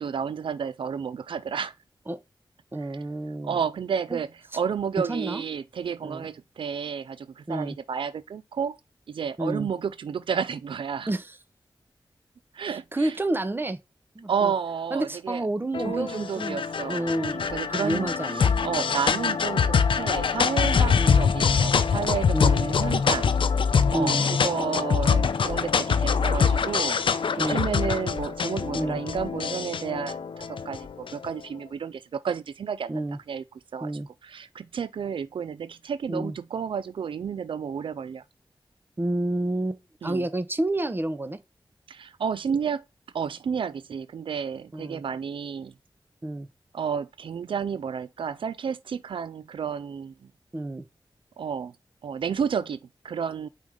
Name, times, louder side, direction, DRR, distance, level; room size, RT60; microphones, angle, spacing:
voice 1, 0.0-1.7 2.8-3.0 3.4-8.8 9.1-11.1 12.5-13.2 14.3-15.4 15.8-23.3 23.9-32.9 33.3-33.4 33.7-33.9 34.2-38.2 40.0-40.2 41.9-42.8 43.1-45.7 46.7-50.3 51.4-51.8 52.0-53.5, right 7 dB, 85° right, 0.4 m, -31 dB
voice 2, 2.7-3.6 4.1-4.2 5.1-5.4 6.0-6.2 7.5-7.8 9.4-9.7 11.1-11.3 12.9-13.8 14.1-14.5 14.9-17.4 17.7-18.9 21.0-21.2 22.3-22.7 23.9-24.2 27.4-27.7 28.7-29.0 32.9-33.2 33.8-34.1 36.1-36.3 39.0-41.4 44.7-45.0 46.2-46.5 50.5-50.9, right 1 dB, 25° right, 0.8 m, -29 dB
sound 1, 15.7-31.3, left 6 dB, 80° left, 0.5 m, -24 dB
5.3 x 3.8 x 4.8 m
wide cardioid pair, 75°, 9 cm